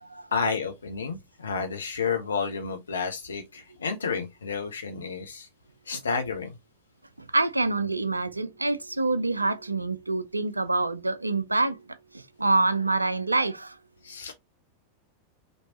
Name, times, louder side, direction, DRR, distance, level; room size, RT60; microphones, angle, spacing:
voice 1, 0.3-5.5 5.9-6.6 14.0-14.3, left 5 dB, 70° left, 0.7 m, -31 dB
voice 2, 7.3-11.8 12.1-13.7, right 2 dB, 80° right, 0.5 m, -26 dB
5.2 x 3.1 x 2.8 m
figure-of-eight pair, 90°, 0 cm